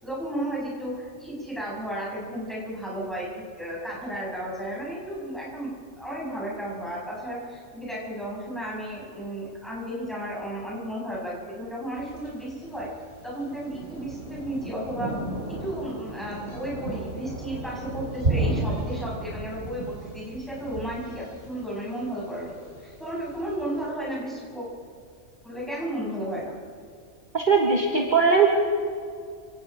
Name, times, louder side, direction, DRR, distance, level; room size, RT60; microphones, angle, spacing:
voice 1, 0.0-3.3 3.6-12.9 13.2-15.1 15.6-22.5 22.8-24.7 25.4-26.5, right 1 dB, ahead, -5 dB, 7.3 m, -33 dB
Thunder, 11.9-23.9, right 2 dB, 55° right, 5.3 m, -34 dB
voice 2, 27.3-28.5, right 5 dB, 40° right, 0 dB, 1.8 m, -19 dB
28.5 x 18.0 x 5.1 m, 2.3 s
omnidirectional pair, 1.3 m